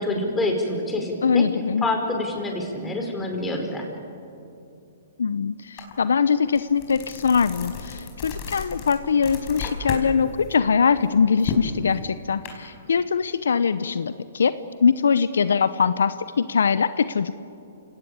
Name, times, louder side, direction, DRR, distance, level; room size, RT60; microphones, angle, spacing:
voice 1, 0.0-1.4 1.8-3.9, left 2 dB, 10° left, 2 dB, 5.0 m, -26 dB
voice 2, 1.2-1.8 5.2-17.3, left 6 dB, 80° left, 14 dB, 0.8 m, -22 dB
sound 1, 5.8-5.9 6.3-10.1 10.4-12.5, left 6 dB, 35° left, 4.8 m, -33 dB
28.5 x 18.0 x 8.8 m, 2.6 s
hypercardioid pair, 130°, 0 cm